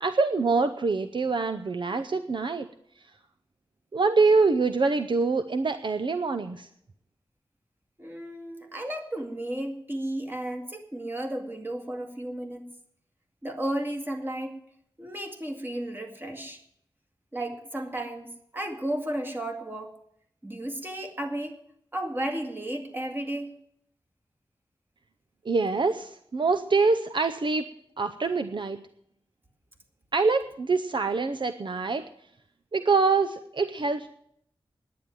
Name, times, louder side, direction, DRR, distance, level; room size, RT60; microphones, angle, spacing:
voice 1, 0.0-2.7 3.9-6.7 25.5-27.7 28.0-28.8 30.1-32.1 32.7-34.1, right 4 dB, 60° right, 9 dB, 0.6 m, -25 dB
voice 2, 8.0-12.6 13.4-14.5 15.0-16.6 17.3-19.9 20.4-21.6 21.9-23.5, right 1 dB, 20° right, 3 dB, 2.1 m, -33 dB
10.5 x 9.4 x 8.9 m, 0.69 s
wide cardioid pair, 95°, 9 cm